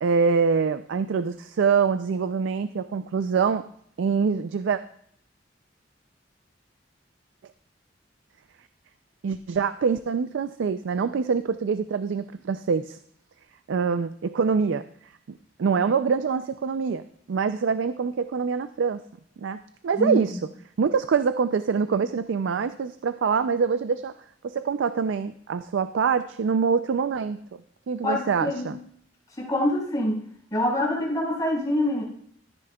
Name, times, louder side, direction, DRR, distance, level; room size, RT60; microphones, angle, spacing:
voice 1, 0.0-3.6 4.0-4.8 9.2-13.0 13.7-14.8 15.3-17.0 17.3-19.0 19.4-20.4 20.8-24.1 24.4-27.6 27.9-28.8, right 5 dB, 80° right, 12 dB, 0.4 m, -25 dB
voice 2, 19.9-20.4 28.0-28.8 29.4-30.2 30.5-32.0, left 1 dB, 20° left, -4 dB, 4.7 m, -25 dB
14.0 x 9.7 x 2.3 m, 0.65 s
head